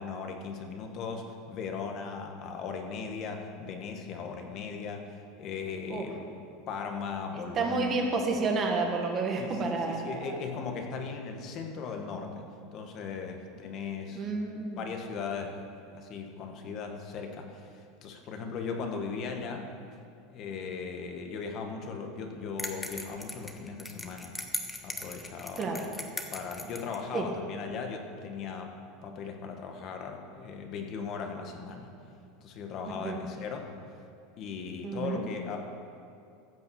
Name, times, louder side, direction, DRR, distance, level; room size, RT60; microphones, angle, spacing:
voice 1, 0.0-6.3 6.7-8.2 9.4-12.4 12.7-14.3 14.8-15.6 15.9-19.7 20.3-24.3 24.8-25.9 26.3-28.7 29.0-31.9 32.4-33.7 34.4-35.6, left 5 dB, 35° left, 3 dB, 1.4 m, -38 dB
voice 2, 7.5-10.4 14.1-14.8 25.6-25.8 27.1-27.3 33.0-33.2 34.8-35.2, right 3 dB, 25° right, 2 dB, 1.4 m, -30 dB
sound 1, 22.6-27.0, left 2 dB, 10° left, 0.8 m, -39 dB
15.5 x 5.7 x 7.0 m, 2.5 s
supercardioid pair, 160°, 0 cm